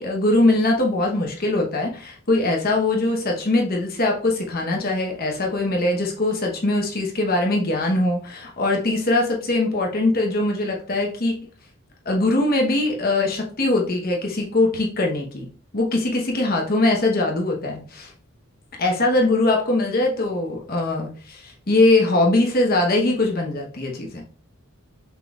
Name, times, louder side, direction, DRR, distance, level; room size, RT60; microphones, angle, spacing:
voice 1, 0.0-11.3 12.0-15.5 15.7-18.1 18.8-24.2, left 2 dB, 40° left, 0 dB, 1.0 m, -21 dB
5.7 x 3.8 x 2.3 m, 0.40 s
head